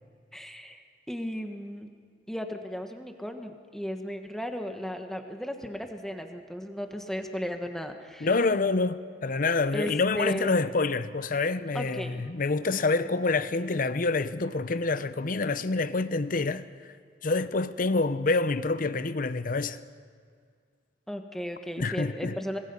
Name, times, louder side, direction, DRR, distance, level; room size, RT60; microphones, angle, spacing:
voice 1, 0.3-0.8 1.1-1.9 2.3-8.3 9.7-10.6 11.7-12.2 21.1-22.6, equal, ahead, 1.4 m, -35 dB
voice 2, 8.2-16.9 17.2-19.8 21.8-22.4, left 3 dB, 50° left, 0.7 m, -27 dB
25.0 x 19.5 x 5.5 m
head